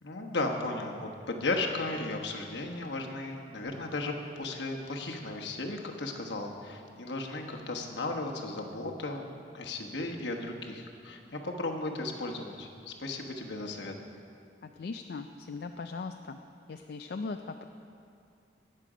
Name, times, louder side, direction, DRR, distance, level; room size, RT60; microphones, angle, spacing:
voice 1, 0.0-13.9, left 2 dB, 80° left, 1 dB, 1.2 m, -35 dB
voice 2, 14.6-16.4 16.7-17.7, left 4 dB, 60° left, 5 dB, 0.4 m, -39 dB
20.0 x 6.8 x 5.0 m, 2.5 s
head